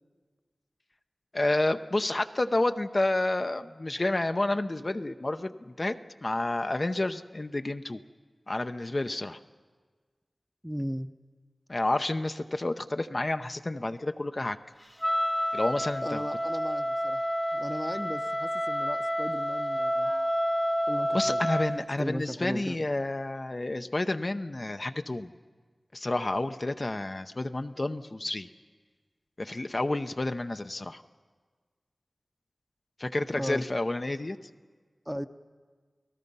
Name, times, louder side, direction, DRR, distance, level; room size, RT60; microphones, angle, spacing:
voice 1, 1.3-6.0 6.2-8.0 8.5-9.4 11.7-14.6 15.5-16.2 21.1-25.3 25.9-28.5 29.4-31.0 33.0-34.4, left 2 dB, 45° left, 8 dB, 0.7 m, -30 dB
voice 2, 10.6-11.1 16.0-20.1 20.9-21.4 21.7-22.8 33.4-33.6 35.1-35.3, equal, 5° right, 10 dB, 0.8 m, -36 dB
Wind instrument woodwind instrument, 15.0-21.8, equal, 15° left, 1.0 m, -29 dB
29.5 x 18.0 x 5.5 m, 1.5 s
wide cardioid pair, 45°, 0 cm